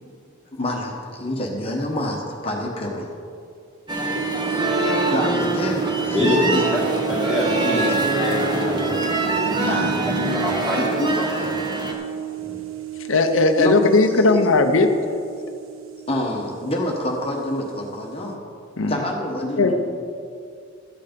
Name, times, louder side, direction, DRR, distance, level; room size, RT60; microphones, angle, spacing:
voice 1, 0.5-3.1 5.0-6.7 7.6-7.9 9.6-10.0 10.7-11.1 13.6-13.8 14.3-14.4 16.1-18.4 18.9-19.7, left 1 dB, 30° left, 0 dB, 1.1 m, -27 dB
sound 1, 3.9-11.9, right 1 dB, 20° right, 1.2 m, -24 dB
sound 2, 4.1-18.3, right 15 dB, 80° right, 0.9 m, -32 dB
voice 2, 6.1-6.8 7.1-8.0 8.2-9.8 10.3-11.3 12.4-12.6, left 1 dB, 5° right, -4 dB, 2.0 m, -26 dB
voice 3, 13.0-14.9 18.8-18.9 19.6-19.7, left 3 dB, 80° left, 6 dB, 0.7 m, -17 dB
13.0 x 8.4 x 5.2 m, 2.4 s
head